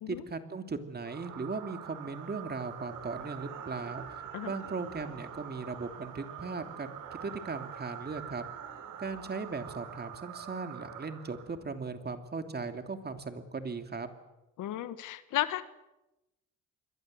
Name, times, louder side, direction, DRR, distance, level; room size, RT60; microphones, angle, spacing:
voice 1, 0.1-4.0 4.4-8.4 9.0-14.1, right 4 dB, 35° right, 8 dB, 2.9 m, -38 dB
sound 1, 1.1-11.8, right 8 dB, 85° right, 5.1 m, -45 dB
voice 2, 14.6-15.6, left 13 dB, 85° left, 13 dB, 1.5 m, -34 dB
27.5 x 22.5 x 7.9 m, 0.96 s
cardioid pair, 90°, 30 cm